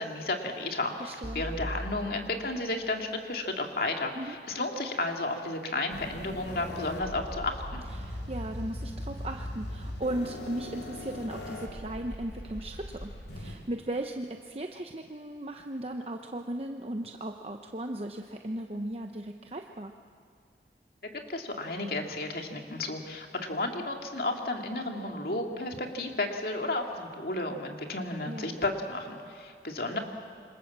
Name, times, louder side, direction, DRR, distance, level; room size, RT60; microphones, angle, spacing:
voice 1, 0.0-7.8 21.0-30.0, left 2 dB, 55° left, 3 dB, 2.5 m, -33 dB
voice 2, 1.0-1.4 4.1-4.3 7.9-19.9 28.3-28.6, right 1 dB, 35° right, 4 dB, 0.9 m, -37 dB
sound 1, 1.2-3.5, right 1 dB, 5° right, 2.9 m, -40 dB
sound 2, 5.9-13.6, left 1 dB, 90° left, 4.4 m, -39 dB
27.0 x 25.5 x 7.5 m, 2.4 s
head